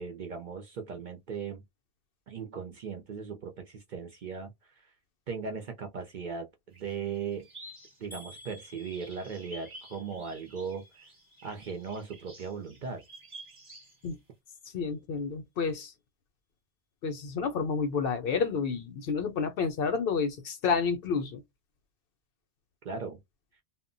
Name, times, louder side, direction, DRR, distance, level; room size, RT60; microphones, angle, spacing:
voice 1, 0.0-1.6 2.3-4.9 5.3-7.5 8.0-10.8 11.4-13.0 22.8-23.2, right 5 dB, 55° right, 0.5 m, -38 dB
sound 1, 6.7-14.2, right 1 dB, 30° right, 0.9 m, -51 dB
sound 2, 8.1-12.1 12.4-13.0 13.5-13.6 13.9-14.0, left 1 dB, ahead, 0.6 m, -54 dB
voice 2, 14.7-15.9 17.0-21.4, left 5 dB, 65° left, 0.7 m, -30 dB
2.1 x 2.0 x 3.7 m
omnidirectional pair, 1.2 m